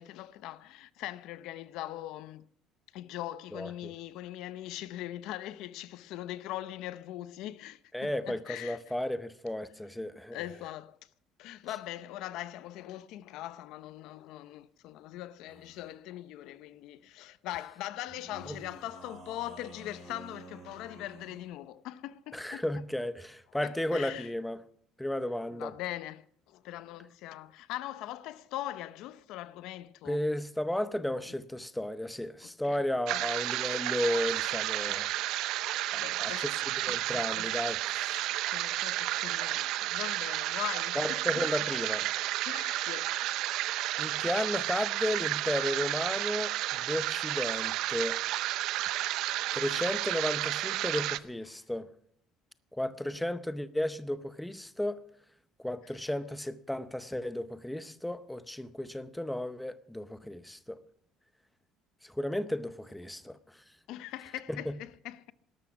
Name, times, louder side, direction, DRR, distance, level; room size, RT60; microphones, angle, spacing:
voice 1, 0.0-2.4 2.9-8.8 10.3-11.0 11.4-22.6 23.6-24.3 25.5-30.3 31.3-31.4 32.4-32.8 33.1-33.2 36.0-36.6 36.9-37.5 38.1-41.4 42.5-43.4 50.8-51.0 63.9-65.3, left 14 dB, 70° left, 0.7 m, -41 dB
voice 2, 3.5-3.9 7.9-10.4 18.5-18.6 22.3-24.6 25.0-25.7 30.1-35.1 35.9-36.5 36.8-38.2 41.0-42.1 44.0-48.2 49.5-51.9 52.7-55.0 55.6-60.8 62.0-63.4 64.5-64.7, left 1 dB, 5° left, 0.7 m, -34 dB
sound 1, 15.5-16.0 18.1-21.5, right 2 dB, 30° right, 5.9 m, -51 dB
sound 2, 33.1-51.2, right 15 dB, 65° right, 0.6 m, -32 dB
18.0 x 13.0 x 6.0 m
cardioid pair, 165°, 0 cm